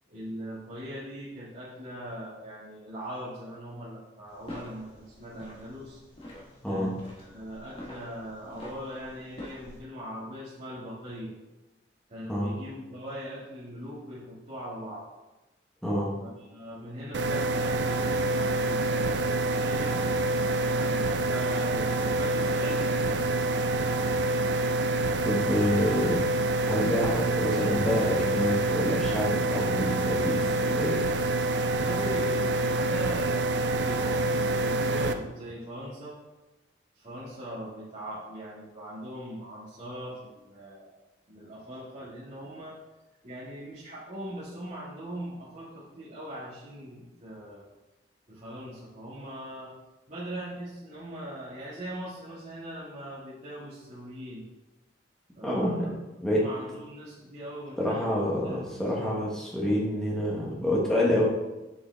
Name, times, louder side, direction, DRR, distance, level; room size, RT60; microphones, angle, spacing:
voice 1, 0.1-6.0 6.7-11.3 12.1-15.1 16.2-20.0 20.6-23.4 31.6-36.2 36.9-40.9 41.3-42.8 43.2-47.7 48.3-49.7 50.1-54.5 55.3-55.9 56.3-59.1, equal, 40° right, -13 dB, 1.9 m, -40 dB
sound 1, 4.3-9.8, left 1 dB, 30° left, 1.3 m, -46 dB
sound 2, 17.1-35.1, right 2 dB, 70° right, 0.5 m, -27 dB
voice 2, 25.2-26.3 26.7-31.0 55.4-55.9 56.2-56.4 57.8-61.2, left 1 dB, 5° left, -5 dB, 1.3 m, -27 dB
6.9 x 5.1 x 3.4 m, 1.0 s
head